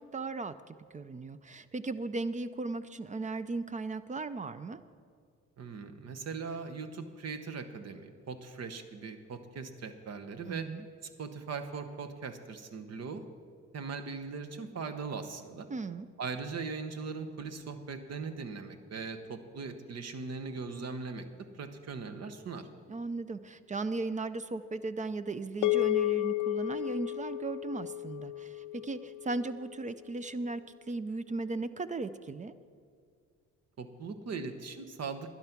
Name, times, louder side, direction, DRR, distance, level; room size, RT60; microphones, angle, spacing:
voice 1, 0.0-4.8 10.5-10.9 15.7-16.1 22.9-30.6 30.9-32.5, right 3 dB, 25° right, 13 dB, 0.4 m, -36 dB
voice 2, 5.6-10.7 11.2-13.2 13.7-15.7 16.2-21.3 21.5-22.7 33.8-35.3, right 4 dB, 55° right, 8 dB, 1.1 m, -40 dB
sound 1, 25.6-30.1, left 17 dB, 85° left, 0.6 m, -33 dB
11.5 x 11.0 x 5.9 m, 2.2 s
cardioid pair, 90°, 30 cm